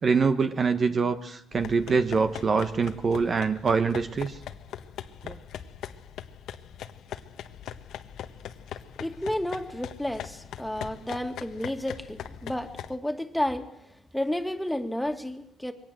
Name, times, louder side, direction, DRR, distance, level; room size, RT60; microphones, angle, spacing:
voice 1, 0.0-4.4 5.2-5.4, right 5 dB, 45° right, 9 dB, 1.2 m, -24 dB
sound 1, 1.5-12.9, left 9 dB, 80° left, 1.3 m, -41 dB
voice 2, 9.0-13.7 14.1-15.7, left 1 dB, 5° left, 6 dB, 2.4 m, -31 dB
23.0 x 18.5 x 7.8 m, 0.77 s
cardioid pair, 90°, 0 cm